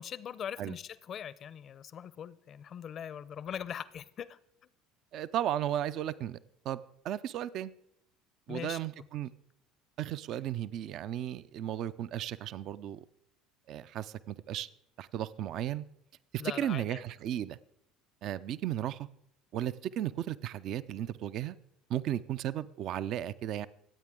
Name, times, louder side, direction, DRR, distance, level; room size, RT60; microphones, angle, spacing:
voice 1, 0.0-4.4 8.5-8.8 16.4-17.0, left 8 dB, 45° left, 18 dB, 0.6 m, -41 dB
voice 2, 5.1-6.4 6.6-7.7 8.5-9.3 10.0-13.0 13.7-14.7 15.0-15.8 16.3-17.6 18.2-19.1 19.5-21.6 21.9-23.7, right 11 dB, 55° right, 15 dB, 0.5 m, -35 dB
24.5 x 8.8 x 3.7 m, 0.79 s
figure-of-eight pair, 65°, 0 cm